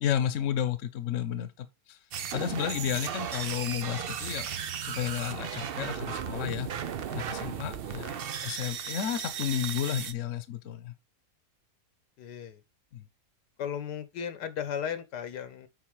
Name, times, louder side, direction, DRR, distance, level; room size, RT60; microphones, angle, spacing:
voice 1, 0.0-2.0 2.3-4.5 4.8-6.7 7.1-10.9 12.9-13.0, left 10 dB, 55° left, 1.1 m, -32 dB
sound 1, 2.1-10.1, right 8 dB, 65° right, 0.5 m, -36 dB
voice 2, 12.2-12.6 13.6-15.7, left 8 dB, 85° left, 1.5 m, -35 dB
7.4 x 4.6 x 4.7 m
omnidirectional pair, 1.8 m